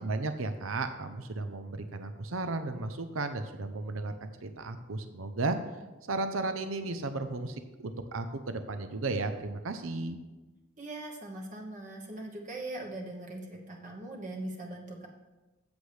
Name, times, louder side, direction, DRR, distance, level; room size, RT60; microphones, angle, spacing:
voice 1, 0.0-5.6 6.1-10.2, right 3 dB, 75° right, 8 dB, 0.7 m, -34 dB
voice 2, 10.8-15.1, right 2 dB, 40° right, 0 dB, 1.1 m, -41 dB
13.5 x 8.0 x 3.4 m, 1.1 s
head